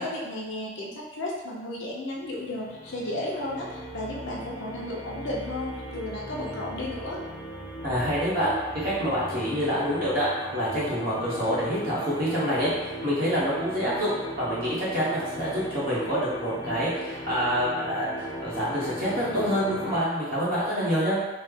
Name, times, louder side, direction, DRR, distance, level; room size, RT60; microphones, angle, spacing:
voice 1, 0.0-7.2, left 1 dB, 70° left, -3 dB, 0.7 m, -34 dB
sound 1, 2.1-20.0, equal, 25° left, 0.9 m, -38 dB
voice 2, 7.8-14.1 14.4-21.2, equal, 50° right, -8 dB, 0.9 m, -27 dB
3.1 x 2.0 x 3.6 m, 1.2 s
head